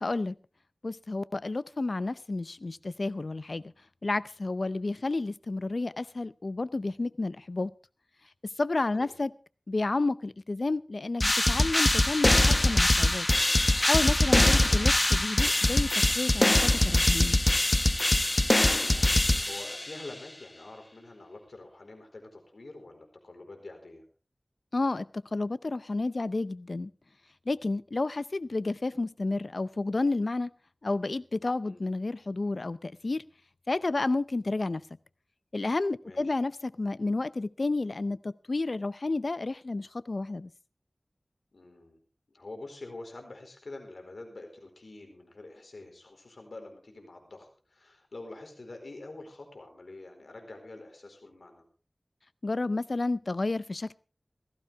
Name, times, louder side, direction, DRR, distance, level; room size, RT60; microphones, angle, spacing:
voice 1, 0.0-0.3 0.8-3.6 4.0-7.7 8.6-9.3 9.7-13.3 13.8-15.9 16.1-16.5 16.8-17.4 24.7-26.9 27.5-30.5 30.8-33.2 33.7-34.8 35.5-40.5 52.4-53.9, left 2 dB, 70° left, 0.6 m, -31 dB
sound 1, 11.2-20.0, left 1 dB, 35° left, 0.9 m, -23 dB
voice 2, 18.6-24.0 31.6-31.8 36.0-36.4 41.5-42.0 42.3-51.7, left 2 dB, 85° left, 4.3 m, -46 dB
17.0 x 15.0 x 3.5 m
wide cardioid pair, 45°, 0 cm